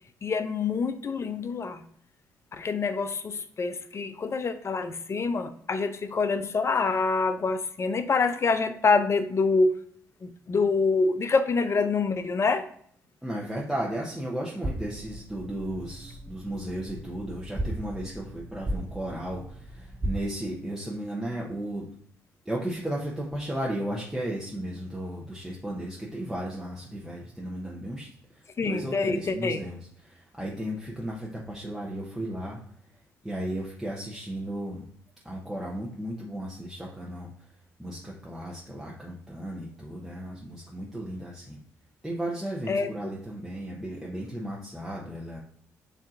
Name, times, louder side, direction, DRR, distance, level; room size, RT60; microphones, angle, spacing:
voice 1, 0.2-1.8 2.5-9.8 10.2-12.7 28.6-29.6 42.7-42.9, left 4 dB, 40° left, 0.5 m, -26 dB
voice 2, 13.2-21.8 22.4-28.1 28.6-32.6 33.2-34.8 35.2-37.3 37.8-41.6 42.0-45.4, right 1 dB, 5° right, 1.0 m, -35 dB
sound 1, 14.6-20.2, right 1 dB, 25° right, 0.6 m, -36 dB
7.3 x 2.7 x 2.5 m
hypercardioid pair, 50°, 7 cm